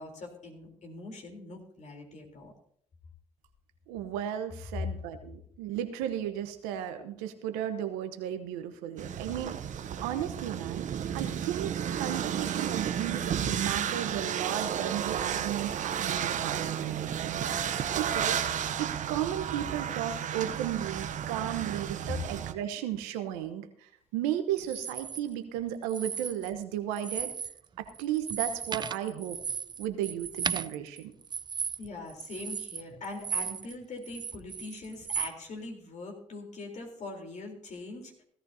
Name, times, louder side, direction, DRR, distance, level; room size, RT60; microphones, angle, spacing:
voice 1, 0.0-2.5 31.8-38.2, left 2 dB, 55° left, 2 dB, 3.8 m, -42 dB
voice 2, 3.9-10.9 11.1-27.3 27.8-29.4 29.8-31.1, right 11 dB, 85° right, 9 dB, 1.0 m, -35 dB
sound 1, 9.0-22.5, right 9 dB, 60° right, 0.8 m, -32 dB
sound 2, 24.6-25.2 25.8-26.6 26.9-27.6 27.9-33.7 34.0-35.3, right 6 dB, 30° right, 0.4 m, -36 dB
16.5 x 13.5 x 2.8 m, 0.66 s
hypercardioid pair, 55°, 15 cm